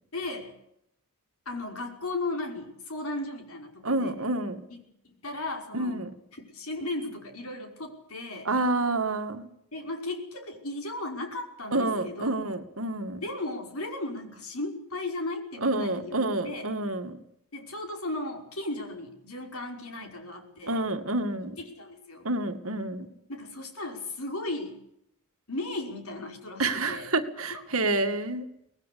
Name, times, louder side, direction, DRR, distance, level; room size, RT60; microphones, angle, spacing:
voice 1, 0.1-0.5 1.5-4.1 4.7-6.0 6.4-8.5 9.7-12.3 13.2-16.2 16.4-16.7 17.5-20.8 21.8-22.3 23.3-24.8 25.5-27.1 27.5-27.6, left 2 dB, 70° left, 4 dB, 5.4 m, -36 dB
voice 2, 3.8-4.7 5.7-6.1 8.4-9.5 11.7-13.2 15.6-17.2 20.7-21.6 22.2-23.1 26.6-28.5, right 2 dB, 65° right, 7 dB, 2.2 m, -28 dB
24.5 x 19.5 x 8.5 m, 0.77 s
head